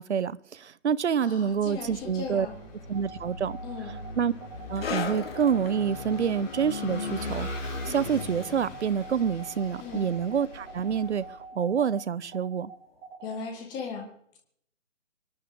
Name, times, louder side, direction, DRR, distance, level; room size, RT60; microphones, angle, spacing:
voice 1, 0.0-2.5 2.9-3.6 4.2-4.3 4.7-12.7, right 7 dB, 60° right, 0.7 m, -27 dB
voice 2, 1.2-2.6 3.6-3.9 9.8-10.1 13.2-14.1, left 5 dB, 10° left, 1.7 m, -37 dB
Vehicle / Engine, 1.5-11.4, left 3 dB, 35° left, 5.6 m, -39 dB
sound 1, 2.9-13.3, right 4 dB, 20° right, 3.5 m, -45 dB
sound 2, 4.8-11.8 12.0-12.2 13.0-13.1, left 5 dB, 50° left, 2.2 m, -41 dB
25.5 x 10.5 x 3.7 m
hypercardioid pair, 160°, 38 cm